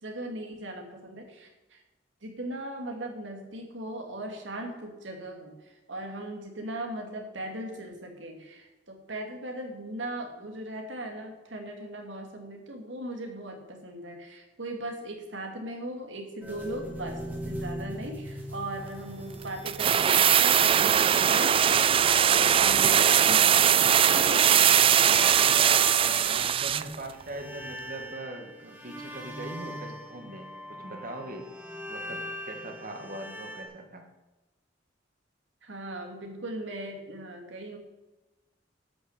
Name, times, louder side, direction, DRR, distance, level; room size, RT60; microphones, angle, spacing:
voice 1, 0.0-1.8 2.2-21.5 21.9-25.3 35.6-37.8, right 1 dB, 80° right, 3 dB, 2.6 m, -38 dB
sound 1, 16.4-20.6 24.5-26.8 27.1-33.6, left 1 dB, 10° right, 2.3 m, -40 dB
sound 2, 19.7-27.0 27.2-27.3, right 9 dB, 30° right, 0.3 m, -21 dB
voice 2, 26.0-31.5 31.9-32.2 32.5-34.1, right 1 dB, 45° right, 4 dB, 2.0 m, -41 dB
12.5 x 6.6 x 8.2 m, 1.1 s
head